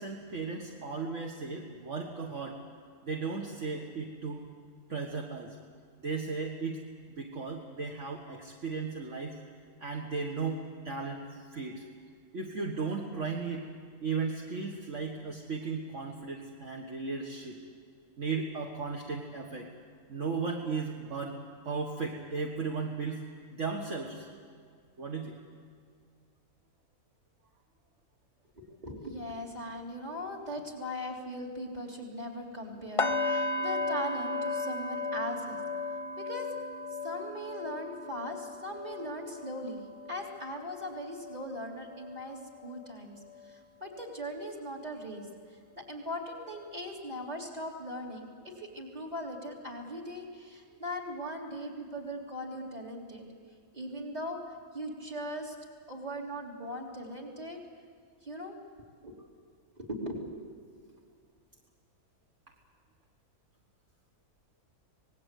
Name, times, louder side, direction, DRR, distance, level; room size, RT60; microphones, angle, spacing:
voice 1, 0.0-2.6 3.0-4.4 4.9-5.6 6.0-6.8 7.2-9.4 9.8-11.8 12.3-13.7 14.0-17.6 18.2-19.7 20.1-21.4 21.7-24.3 25.0-25.4, right 4 dB, 55° right, 0 dB, 1.9 m, -36 dB
voice 2, 28.6-35.6 36.2-36.5 37.0-39.8 40.1-43.2 43.4-45.3 45.8-53.2 53.7-54.4 54.7-55.6 55.9-57.6 58.2-58.6 59.0-59.1 59.8-60.2, equal, 30° right, 0 dB, 3.6 m, -39 dB
sound 1, 33.0-42.9 43.2-43.5 44.0-44.1, left 3 dB, 25° left, 1.0 m, -35 dB
26.0 x 19.5 x 8.4 m, 2.1 s
omnidirectional pair, 1.5 m